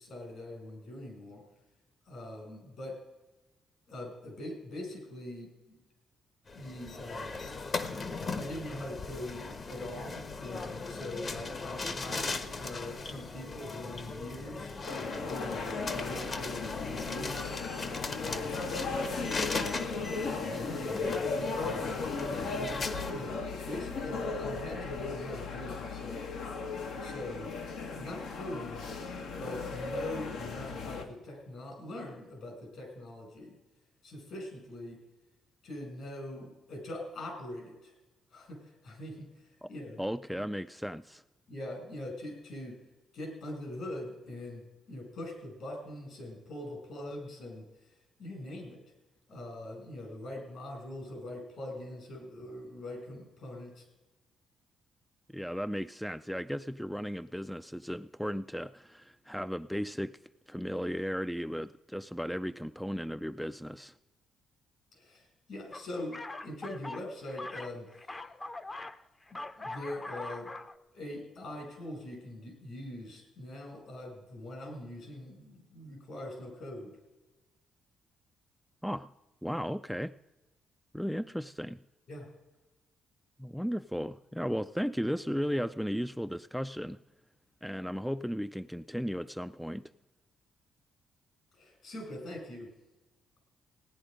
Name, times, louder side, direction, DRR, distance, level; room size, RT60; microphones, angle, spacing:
voice 1, 0.0-1.4 2.1-3.0 3.9-5.8 6.5-7.3 8.3-14.9 15.2-17.5 18.2-19.0 19.5-22.0 22.5-26.2 27.0-27.5 28.0-28.9 29.4-33.5 34.0-35.0 35.6-37.9 38.3-39.3 39.7-40.0 40.3-40.4 41.5-42.8 43.1-47.7 48.2-48.8 49.3-53.8 64.9-67.9 69.3-70.5 70.9-77.0 82.1-82.3 91.5-92.7, left 1 dB, 65° left, 2 dB, 6.1 m, -43 dB
sound 1, 6.5-23.1, left 3 dB, 45° left, 1.2 m, -38 dB
sound 2, 14.8-31.0, left 4 dB, 85° left, 1.7 m, -36 dB
voice 2, 40.0-41.2 55.3-60.1 60.5-63.9 78.8-79.1 79.4-80.1 80.9-81.8 83.4-87.0 87.6-89.9, equal, ahead, 12 dB, 0.3 m, -35 dB
sound 3, 65.7-69.0 69.3-70.8, left 2 dB, 25° left, 0.7 m, -42 dB
17.0 x 9.9 x 5.1 m, 1.1 s
cardioid pair, 90°, 0 cm